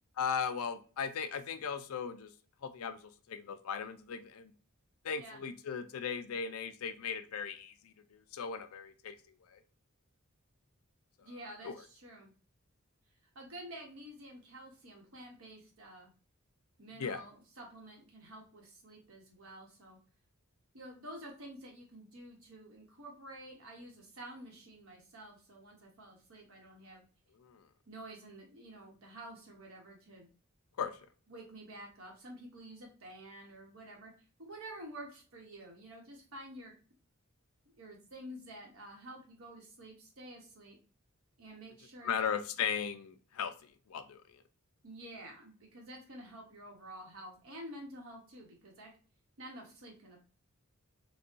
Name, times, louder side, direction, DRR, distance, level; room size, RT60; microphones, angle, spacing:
voice 1, 0.2-2.3 2.6-4.5 5.0-7.7 8.3-9.2 9.5-9.6 11.6-11.8 17.0-17.2 27.4-27.6 30.8-30.9 42.0-43.5 43.9-44.2, left 6 dB, 75° left, 9 dB, 0.4 m, -37 dB
voice 2, 11.2-12.3 13.3-16.1 16.8-20.0 20.7-27.0 27.9-30.3 31.3-34.1 34.4-36.7 37.8-40.8 41.4-42.3 44.8-48.9 49.4-50.2, right 1 dB, 70° right, 0 dB, 1.1 m, -50 dB
4.1 x 2.2 x 2.5 m, 0.38 s
head